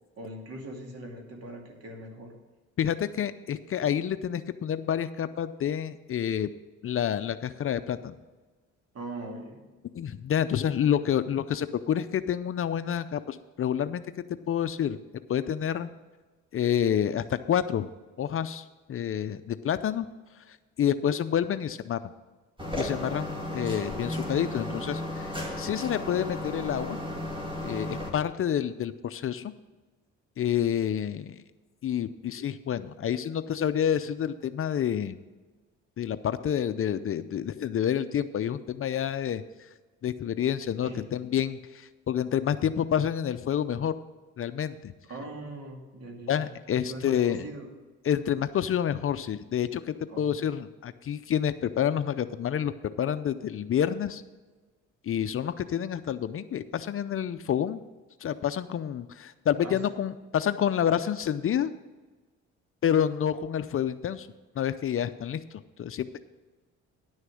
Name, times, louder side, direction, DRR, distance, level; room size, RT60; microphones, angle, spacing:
voice 1, 0.2-2.4 8.9-9.6 40.8-41.1 45.1-46.5 46.8-47.7 50.1-50.4 59.6-59.8, right 1 dB, 55° right, 1 dB, 2.5 m, -41 dB
voice 2, 2.8-6.5 6.8-8.2 9.9-15.0 15.3-15.9 16.5-17.9 18.2-20.1 20.8-22.0 22.8-27.0 27.6-29.5 30.4-31.4 31.8-35.2 36.0-39.4 40.0-43.9 44.4-44.9 46.3-47.5 48.1-54.2 55.0-57.8 58.2-61.7 62.8-64.3 64.6-65.4 65.8-66.2, left 9 dB, 45° left, 12 dB, 0.5 m, -28 dB
sound 1, 22.6-28.1, left 1 dB, 15° right, 2.3 m, -34 dB
10.5 x 6.4 x 6.3 m, 1.3 s
cardioid pair, 90°, 30 cm